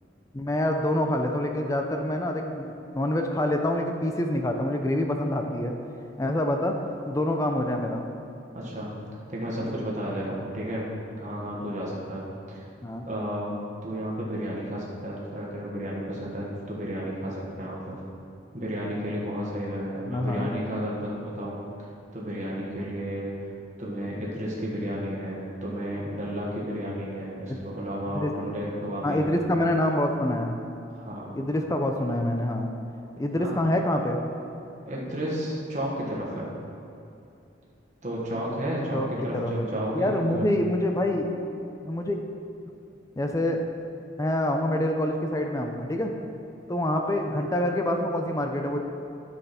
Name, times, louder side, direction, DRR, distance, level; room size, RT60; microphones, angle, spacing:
voice 1, 0.3-2.7 2.9-5.7 6.2-6.8 7.1-8.0 12.8-13.1 20.1-20.5 27.5-27.6 28.1-28.3 29.0-30.6 31.4-32.7 33.2-34.2 38.9-39.1 39.3-39.6 39.9-41.3 41.8-42.2 43.2-43.6 44.2-46.1 46.7-48.8, left 1 dB, 15° left, 4 dB, 0.5 m, -26 dB
voice 2, 8.5-8.9 9.3-10.8 11.2-12.7 13.0-18.0 18.5-21.6 22.1-23.5 23.8-29.3 30.9-31.3 33.3-33.5 34.9-36.5 38.0-40.5, equal, 40° right, -5 dB, 1.5 m, -32 dB
9.8 x 6.8 x 4.3 m, 2.7 s
head